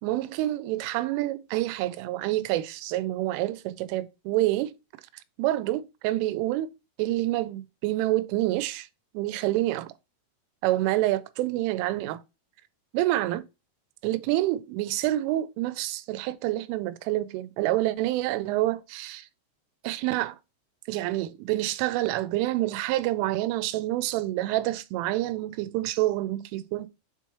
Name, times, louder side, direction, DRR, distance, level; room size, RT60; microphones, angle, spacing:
voice 1, 0.0-4.7 5.4-6.7 7.0-8.9 9.1-9.9 10.6-12.2 12.9-13.4 14.0-19.3 19.8-20.4 20.9-26.9, right 16 dB, 90° right, 3.2 m, -27 dB
7.3 x 3.1 x 5.8 m
omnidirectional pair, 5.6 m